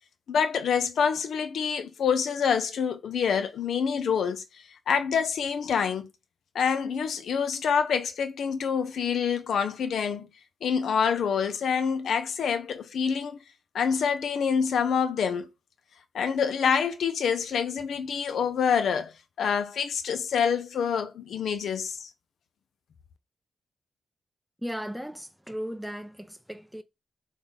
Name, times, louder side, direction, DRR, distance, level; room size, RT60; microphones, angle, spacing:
voice 1, 0.3-4.4 4.9-6.1 6.5-10.3 10.6-13.4 13.7-15.5 16.1-19.1 19.4-22.0, left 6 dB, 85° left, 0.4 m, -26 dB
voice 2, 24.6-26.8, equal, ahead, 0.3 m, -36 dB
3.5 x 2.3 x 3.9 m
cardioid pair, 85°, 0 cm